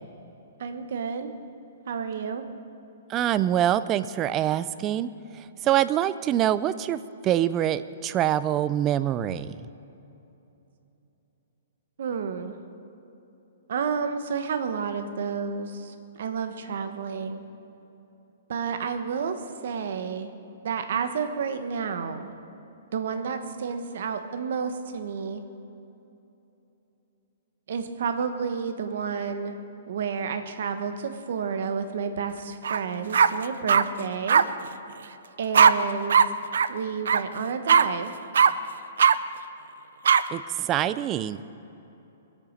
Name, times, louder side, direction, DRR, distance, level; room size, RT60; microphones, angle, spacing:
voice 1, 0.6-1.3 1.9-2.4 12.0-12.6 13.7-17.4 18.5-20.3 20.6-22.3 22.9-25.4 27.7-29.6 29.9-34.4 35.4-36.2 36.7-38.1, right 6 dB, 55° right, 7 dB, 1.2 m, -30 dB
voice 2, 3.1-5.1 5.6-9.6 40.3-41.4, right 11 dB, 15° right, 14 dB, 0.3 m, -25 dB
sound 1, 32.6-32.8 33.1-33.8 34.3-34.4 35.5-35.7 36.1-36.3 36.5-36.7 37.0-37.2 37.7-37.8 38.3-38.5 39.0-39.1 40.0-40.2, right 7 dB, 75° right, 0.5 m, -17 dB
22.5 x 8.6 x 6.6 m, 3.0 s
hypercardioid pair, 170°, 0 cm